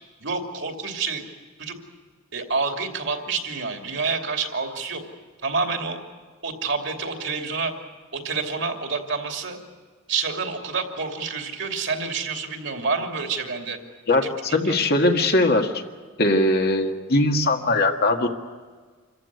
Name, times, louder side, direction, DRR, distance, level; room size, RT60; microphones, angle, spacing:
voice 1, 0.2-1.2 1.6-1.8 2.3-5.0 5.4-6.0 6.4-7.7 8.1-9.6 10.1-13.8 14.2-14.7, right 4 dB, 60° right, 3 dB, 2.8 m, -28 dB
voice 2, 14.1-15.8 16.2-18.3, left 2 dB, 50° left, 3 dB, 1.8 m, -20 dB
27.0 x 15.0 x 9.7 m, 1.5 s
head